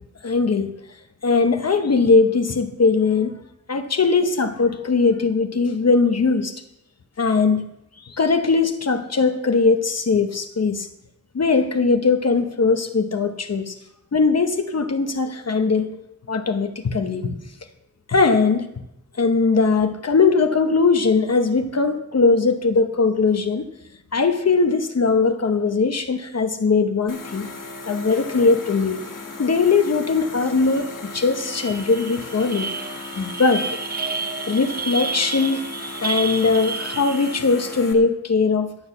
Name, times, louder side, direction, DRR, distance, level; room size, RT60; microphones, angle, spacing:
voice 1, 0.2-0.7 1.2-3.4 3.7-6.6 7.2-7.7 8.0-10.9 11.3-13.8 14.1-16.0 16.3-17.4 18.1-18.7 19.2-23.7 24.1-27.5 27.9-29.0 29.4-32.7 33.2-33.7 34.5-35.7 36.0-38.7, left 4 dB, 55° left, 7 dB, 0.9 m, -20 dB
sound 1, 27.1-37.9, left 3 dB, 75° left, 1.9 m, -36 dB
sound 2, 30.8-30.9 31.2-37.6, right 4 dB, 30° right, 0.5 m, -31 dB
11.5 x 7.9 x 6.9 m, 0.85 s
wide cardioid pair, 95°, 31 cm